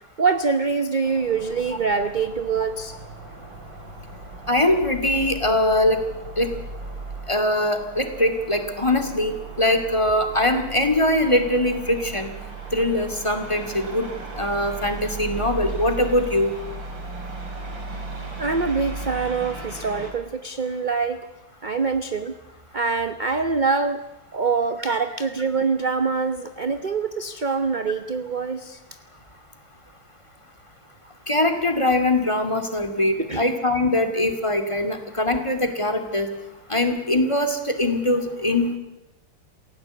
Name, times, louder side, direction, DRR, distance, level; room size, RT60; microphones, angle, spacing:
voice 1, 0.2-2.9 18.4-21.2 21.6-22.3 22.7-24.0 24.3-28.8 33.3-33.4, right 4 dB, 40° right, 9 dB, 0.7 m, -24 dB
sound 1, 1.0-20.1, right 3 dB, 65° right, 4.3 m, -36 dB
voice 2, 4.5-6.0 6.4-6.5 7.3-12.3 12.7-14.1 14.4-16.5 24.9-25.0 31.3-36.3 36.7-38.8, left 1 dB, 15° left, 7 dB, 2.3 m, -22 dB
28.0 x 16.5 x 8.2 m, 1.0 s
omnidirectional pair, 2.3 m